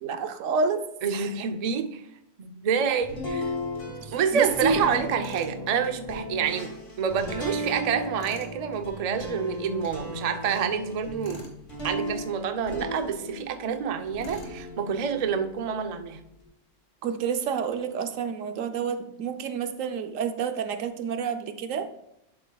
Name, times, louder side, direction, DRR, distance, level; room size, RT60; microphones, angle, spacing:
voice 1, 0.0-0.8 1.1-1.3 4.0-5.3 13.7-13.8 17.0-21.9, right 5 dB, 80° right, 9 dB, 1.1 m, -29 dB
voice 2, 1.0-2.0 2.4-3.5 4.1-11.4 11.8-16.2, right 7 dB, 45° right, 7 dB, 0.5 m, -28 dB
sound 1, 3.0-13.6 14.1-16.4, equal, 65° left, 2.7 m, -36 dB
Tools, 5.2-5.6 8.2-8.6 11.2-11.6 14.2-14.6, left 2 dB, 85° left, 1.6 m, -45 dB
11.0 x 7.3 x 2.3 m, 0.81 s
omnidirectional pair, 1.3 m